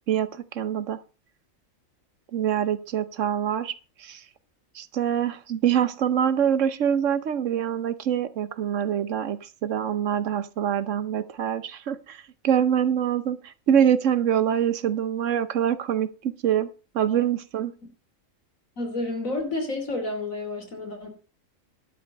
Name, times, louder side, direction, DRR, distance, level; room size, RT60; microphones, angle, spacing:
voice 1, 0.1-1.0 2.3-4.2 4.7-16.7 16.9-17.7, right 9 dB, 70° right, 13 dB, 1.1 m, -25 dB
voice 2, 18.8-21.1, left 2 dB, 80° left, 4 dB, 3.5 m, -30 dB
11.5 x 5.3 x 7.8 m, 0.35 s
omnidirectional pair, 1.4 m